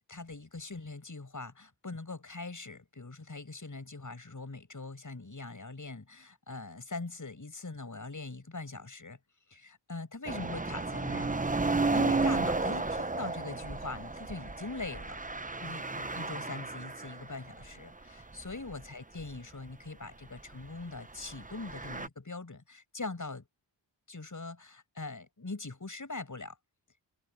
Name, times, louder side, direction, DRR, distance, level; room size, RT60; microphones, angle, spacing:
voice 1, 0.1-9.2 9.5-11.4 11.9-15.2 15.6-23.5 24.1-26.6, left 3 dB, 40° left, 7.2 m, -42 dB
sound 1, 10.3-17.3 17.6-17.7 18.3-18.8 19.2-19.4 21.3-22.1, right 3 dB, 20° right, 1.0 m, -32 dB
cardioid pair, 55°, 45 cm